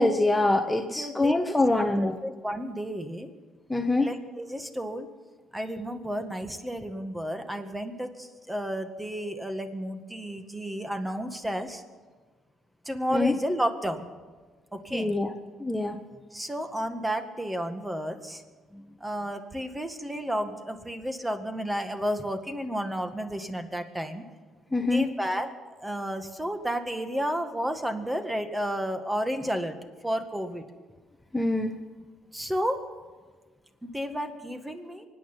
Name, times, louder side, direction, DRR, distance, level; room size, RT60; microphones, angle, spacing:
voice 1, 0.0-2.1 3.7-4.1 13.1-13.3 14.9-15.3 15.6-15.9 24.7-25.1 31.3-31.7, left 2 dB, 10° left, 5 dB, 1.2 m, -24 dB
voice 2, 0.9-3.3 4.0-5.1 5.5-11.8 12.9-14.1 14.7-15.1 16.3-18.4 19.0-24.2 24.8-25.5 25.8-29.8 30.0-30.6 32.3-32.8 33.8-35.1, equal, 10° right, 7 dB, 1.9 m, -32 dB
24.0 x 9.4 x 5.8 m, 1.4 s
supercardioid pair, 65°, 0 cm